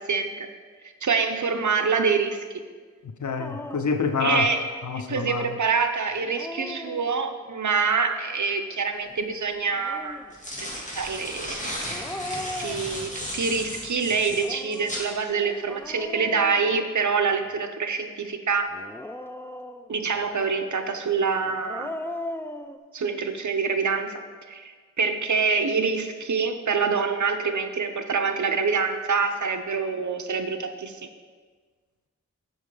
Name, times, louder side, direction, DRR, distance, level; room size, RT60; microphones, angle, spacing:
voice 1, 0.1-0.5 0.8-2.4 4.2-4.6 5.1-10.2 11.0-12.0 12.3-18.7 19.9-21.9 22.9-31.0, right 5 dB, 75° right, 6 dB, 0.6 m, -26 dB
voice 2, 3.2-4.5 4.8-5.5, left 5 dB, 80° left, 7 dB, 0.5 m, -26 dB
Dog, 3.4-4.0 6.1-7.5 9.6-10.4 11.9-13.3 14.3-17.5 18.7-20.1 21.4-22.8, left 1 dB, 10° left, 0.3 m, -38 dB
sound 1, 9.0-9.1 10.1-15.1, equal, 25° left, 1.6 m, -35 dB
6.8 x 5.4 x 4.8 m, 1.5 s
wide cardioid pair, 65°, 29 cm